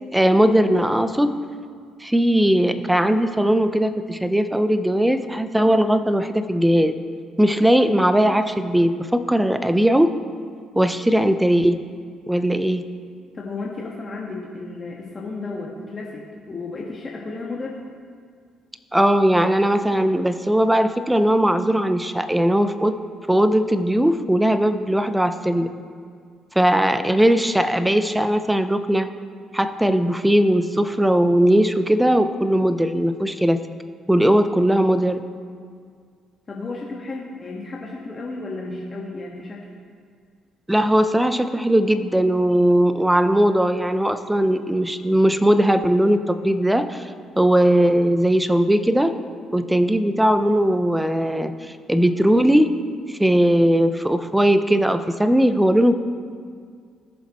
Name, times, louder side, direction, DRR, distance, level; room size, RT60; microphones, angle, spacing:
voice 1, 0.0-1.3 2.0-6.9 7.4-10.1 10.8-11.8 12.3-12.8 18.9-23.0 23.3-25.7 26.5-29.1 29.5-33.6 34.1-35.2 40.7-47.0 47.4-49.1 49.5-52.7 53.1-55.9, right 1 dB, 5° right, 10 dB, 0.7 m, -19 dB
voice 2, 13.3-17.8 36.5-39.7, left 3 dB, 35° left, -3 dB, 1.5 m, -33 dB
18.0 x 7.1 x 3.1 m, 2.1 s
supercardioid pair, 70°, 0 cm